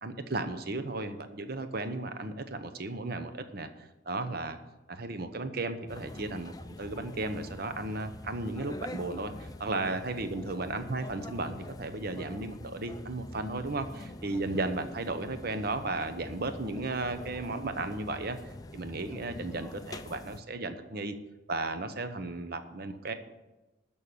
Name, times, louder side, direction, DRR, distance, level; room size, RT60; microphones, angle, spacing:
voice 1, 0.0-4.6 4.9-18.4 18.7-21.1 21.5-23.1, right 2 dB, 50° right, 9 dB, 0.9 m, -35 dB
sound 1, 5.9-20.4, left 2 dB, 20° left, 0.4 m, -45 dB
13.0 x 5.5 x 8.3 m, 1.1 s
head